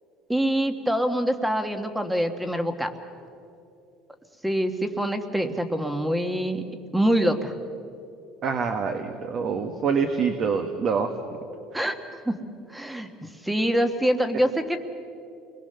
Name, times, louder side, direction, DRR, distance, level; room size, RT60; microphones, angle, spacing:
voice 1, 0.3-2.9 4.4-6.6 6.9-7.5 11.7-12.0 12.2-12.3 12.7-13.1 13.4-14.8, equal, 5° right, 8 dB, 1.4 m, -25 dB
voice 2, 8.4-11.1, right 5 dB, 40° right, 6 dB, 1.5 m, -25 dB
30.0 x 21.5 x 6.8 m, 2.6 s
cardioid pair, 145°, 0 cm